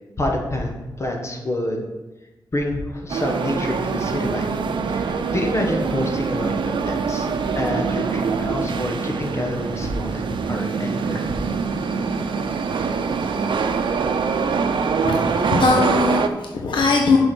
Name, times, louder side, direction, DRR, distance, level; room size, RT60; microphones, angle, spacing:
voice 1, 0.2-0.7 1.0-1.8 2.5-4.6 4.9-7.3 7.5-11.2, left 1 dB, 35° left, 1 dB, 1.4 m, -27 dB
sound 1, 3.1-16.3, right 5 dB, 85° right, 0.7 m, -24 dB
voice 2, 15.0-17.2, left 3 dB, 90° left, 1 dB, 0.9 m, -20 dB
6.3 x 6.2 x 6.2 m, 1.1 s
wide cardioid pair, 135°, 8 cm